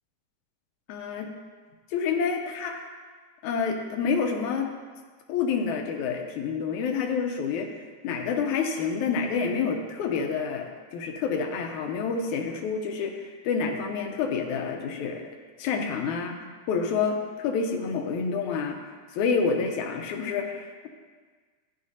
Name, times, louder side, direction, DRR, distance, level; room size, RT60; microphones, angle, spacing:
voice 1, 0.9-1.3 1.9-2.8 3.4-4.7 5.3-15.2 15.6-16.4 16.7-18.8 19.1-20.9, left 5 dB, 80° left, 3 dB, 2.1 m, -28 dB
11.5 x 9.6 x 2.8 m, 1.5 s
omnidirectional pair, 3.5 m